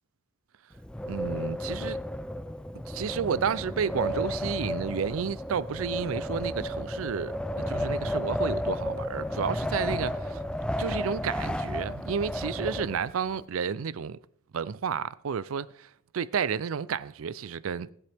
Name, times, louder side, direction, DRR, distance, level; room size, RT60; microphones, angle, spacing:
Wind, 0.7-13.4, left 1 dB, 5° left, 0.4 m, -32 dB
voice 1, 1.1-2.0 2.7-10.4 10.8-14.2 14.5-17.9, right 6 dB, 75° right, 0.4 m, -31 dB
18.0 x 7.9 x 3.5 m
head